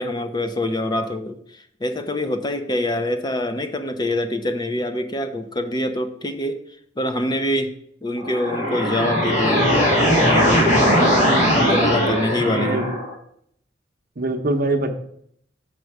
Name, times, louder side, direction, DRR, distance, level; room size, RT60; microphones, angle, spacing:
voice 1, 0.0-6.6 7.0-7.7 8.0-11.0 11.5-12.8, left 1 dB, 25° left, 7 dB, 0.5 m, -25 dB
sound 1, 8.2-13.1, equal, 40° left, 1.8 m, -19 dB
voice 2, 12.4-12.9 14.2-15.0, right 2 dB, 50° right, 5 dB, 0.8 m, -23 dB
6.4 x 5.4 x 4.7 m, 0.67 s
head